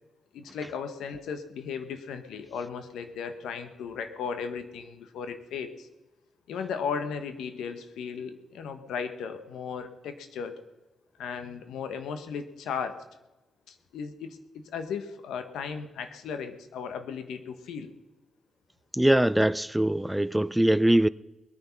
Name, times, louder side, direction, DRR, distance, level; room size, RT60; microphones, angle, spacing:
voice 1, 0.3-5.9 6.5-10.6 11.2-13.0 13.7-17.9, left 6 dB, 80° left, 1.2 m, -36 dB
voice 2, 18.9-21.1, right 1 dB, 10° right, 0.5 m, -22 dB
20.5 x 9.4 x 5.8 m
supercardioid pair, 45°, 0 cm